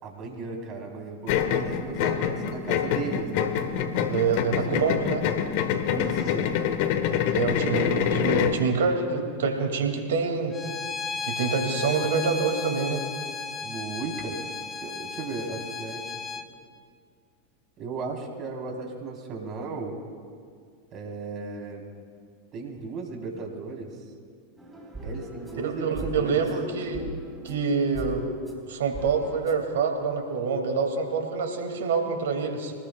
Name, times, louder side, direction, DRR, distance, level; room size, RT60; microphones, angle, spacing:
voice 1, 0.0-5.0 5.8-6.5 13.6-14.4 14.8-16.1 17.8-20.0 20.9-21.9 22.5-24.1 25.0-26.4, right 4 dB, 45° right, 0 dB, 3.8 m, -36 dB
sound 1, 1.3-8.6, left 8 dB, 60° left, 1.2 m, -26 dB
voice 2, 4.1-5.2 7.3-10.5 11.2-13.0 25.6-27.0 27.4-28.4 28.7-32.7, right 5 dB, 75° right, 4 dB, 2.3 m, -26 dB
Bowed string instrument, 10.5-16.5, left 5 dB, 25° left, 1.1 m, -35 dB
sound 2, 24.6-29.6, right 3 dB, 10° right, 4.6 m, -39 dB
25.5 x 19.5 x 2.4 m, 2.1 s
hypercardioid pair, 90°, 0 cm